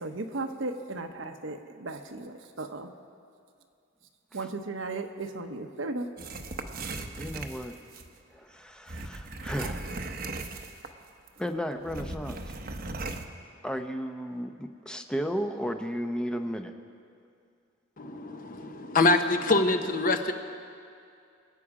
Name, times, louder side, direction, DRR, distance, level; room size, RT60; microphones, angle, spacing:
voice 1, 0.0-2.9 4.3-6.1, right 2 dB, 75° right, 6 dB, 1.0 m, -36 dB
sound 1, 6.2-8.1 8.9-11.0 11.3-11.4 11.8-13.3, right 2 dB, 50° right, 0.8 m, -37 dB
voice 2, 7.2-7.7 8.3-9.9 11.4-12.5 13.6-16.7, equal, 5° left, 6 dB, 0.6 m, -34 dB
voice 3, 18.0-20.3, left 3 dB, 45° left, 7 dB, 0.8 m, -25 dB
25.0 x 8.5 x 4.9 m, 2.4 s
head